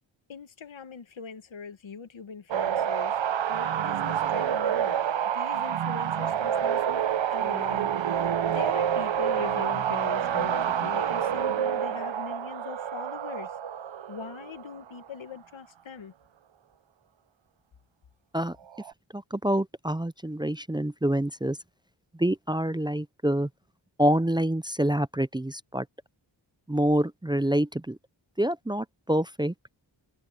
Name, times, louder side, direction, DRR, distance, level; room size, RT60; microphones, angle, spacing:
voice 1, 0.3-3.2 3.5-4.9 5.3-7.0 7.3-13.6 14.1-16.1, left 6 dB, 85° left, 1.5 m, -41 dB
sound 1, 2.5-14.9 18.7-18.9, right 9 dB, 75° right, 0.8 m, -28 dB
voice 2, 19.1-21.6 22.2-23.5 24.0-25.9 26.7-28.0 28.4-29.5, right 1 dB, 10° right, 0.6 m, -26 dB
cardioid pair, 50°, 46 cm